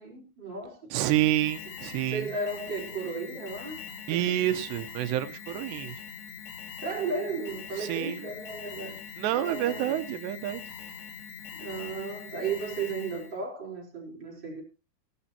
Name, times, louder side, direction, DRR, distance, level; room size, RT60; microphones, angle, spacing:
voice 1, 0.0-0.9 2.0-4.4 6.8-9.0 9.3-10.1 11.5-14.6, right 4 dB, 25° right, 5.1 m, -35 dB
voice 2, 0.9-2.3 4.1-6.0 7.8-8.2 9.2-10.6, right 13 dB, 85° right, 3.2 m, -28 dB
Alarm, 1.0-13.4, left 7 dB, 85° left, 4.4 m, -43 dB
19.0 x 11.5 x 2.9 m
omnidirectional pair, 4.8 m